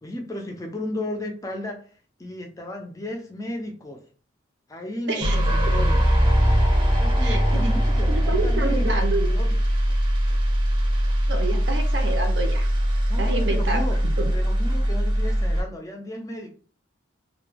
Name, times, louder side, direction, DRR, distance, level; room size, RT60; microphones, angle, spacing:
voice 1, 0.0-4.0 4.7-6.1 6.9-9.1 9.3-9.6 13.1-14.0 14.3-16.5, left 1 dB, 15° left, 2 dB, 0.4 m, -34 dB
sound 1, 5.2-15.6, equal, 25° right, 0.6 m, -21 dB
voice 2, 7.2-7.6 8.0-9.3 11.3-12.7 13.2-13.8 14.2-14.3, right 2 dB, 65° right, 4 dB, 0.6 m, -28 dB
2.2 x 2.1 x 3.2 m, 0.41 s
head